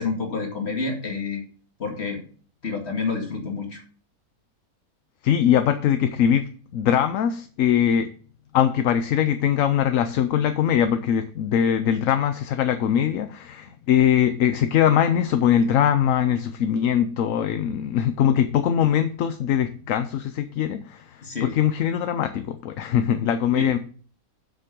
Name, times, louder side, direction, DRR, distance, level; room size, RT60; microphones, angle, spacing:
voice 1, 0.0-1.4 1.8-2.2 2.6-3.8 21.2-21.5 23.5-23.7, left 4 dB, 45° left, 1 dB, 2.3 m, -28 dB
voice 2, 5.2-6.5 6.7-8.1 8.5-23.8, left 9 dB, 65° left, 9 dB, 1.0 m, -22 dB
7.6 x 6.4 x 5.2 m, 0.42 s
omnidirectional pair, 1.6 m